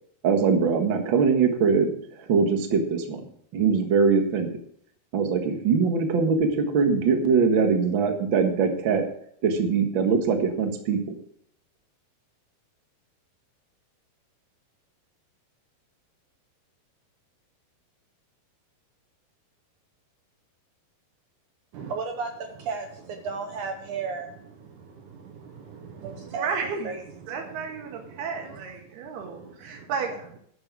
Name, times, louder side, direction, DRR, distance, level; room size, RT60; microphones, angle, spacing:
voice 1, 0.2-1.9 2.2-3.2 3.5-4.6 5.1-9.0 9.4-11.0, right 5 dB, 50° right, 4 dB, 1.4 m, -22 dB
voice 2, 21.7-26.5 26.8-29.9, right 5 dB, 70° right, 5 dB, 2.0 m, -37 dB
voice 3, 26.3-27.0 27.3-30.4, right 5 dB, 85° right, 3 dB, 3.6 m, -33 dB
12.5 x 6.9 x 6.2 m, 0.66 s
omnidirectional pair, 4.4 m